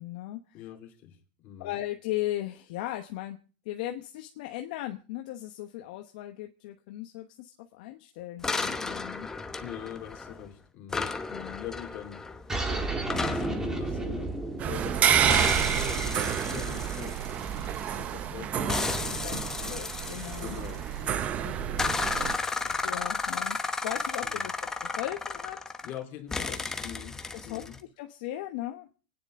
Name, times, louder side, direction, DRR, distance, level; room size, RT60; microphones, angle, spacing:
voice 1, 0.0-0.6 1.6-3.4 3.6-9.3 11.3-11.6 19.2-19.4 19.7-20.6 21.4-21.8 22.8-25.6 27.3-27.6 28.0-28.9, left 15 dB, 60° left, 1.1 m, -37 dB
voice 2, 0.5-1.8 9.6-11.1 11.6-12.3 12.6-17.3 17.6-19.8 20.4-22.8 23.2-23.4 24.2-24.5 25.8-27.8, left 10 dB, 40° left, 2.9 m, -44 dB
sound 1, 8.4-10.5 10.9-14.9 15.3-18.1 18.7-21.1 21.8-26.0 26.3-27.8, left 4 dB, 10° left, 0.9 m, -34 dB
sound 2, 12.5-17.6, right 2 dB, 10° right, 1.8 m, -34 dB
sound 3, 14.6-22.4, right 9 dB, 30° right, 0.8 m, -29 dB
28.0 x 10.0 x 3.7 m
supercardioid pair, 150°, 5 cm